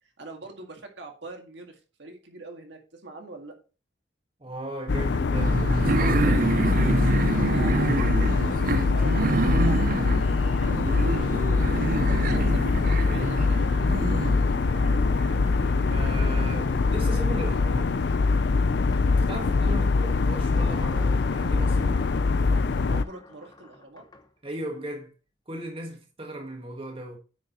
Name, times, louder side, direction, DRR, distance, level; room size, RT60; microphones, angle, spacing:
voice 1, 0.2-3.6 7.5-7.8 8.9-11.4 11.9-13.9 19.7-19.8 22.8-24.0, right 2 dB, 70° right, 1.9 m, -43 dB
voice 2, 4.4-7.3 15.1-15.2 15.9-17.9 19.1-22.0 24.4-25.1 25.5-27.2, right 1 dB, 30° right, 1.5 m, -37 dB
sound 1, 4.9-23.0, left 4 dB, 65° left, 0.5 m, -23 dB
sound 2, 5.3-17.7, right 3 dB, 50° right, 0.6 m, -28 dB
sound 3, 18.9-19.1 20.5-24.3, left 2 dB, 25° left, 0.9 m, -48 dB
9.4 x 7.1 x 3.0 m
head